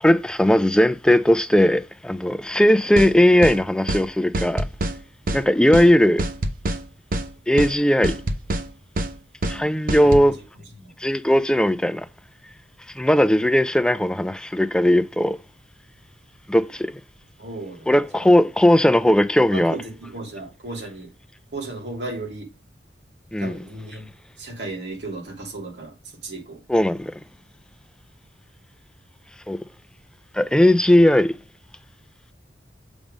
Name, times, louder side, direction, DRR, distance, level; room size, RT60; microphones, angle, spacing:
voice 1, 0.0-4.7 5.3-6.2 7.5-8.2 9.5-10.3 11.0-12.1 13.0-15.4 16.5-16.9 17.9-19.9 23.3-23.6 26.7-27.1 29.5-29.6 30.3-31.3, left 1 dB, 5° left, 0.3 m, -18 dB
sound 1, 3.0-3.1 3.4-3.6 3.9-4.0 4.3-5.0 5.3-5.4 5.7-5.9 6.2-6.8 7.1-7.3 7.6-7.7 8.0-8.7 9.0-9.1 9.4-9.6 9.9-10.3, right 1 dB, 55° right, 0.8 m, -25 dB
voice 2, 9.4-10.4 10.8-10.9 17.4-18.3 19.5-21.1 21.5-22.5 23.4-24.1 24.4-26.6, right 2 dB, 75° right, 2.8 m, -35 dB
7.1 x 3.5 x 5.0 m
head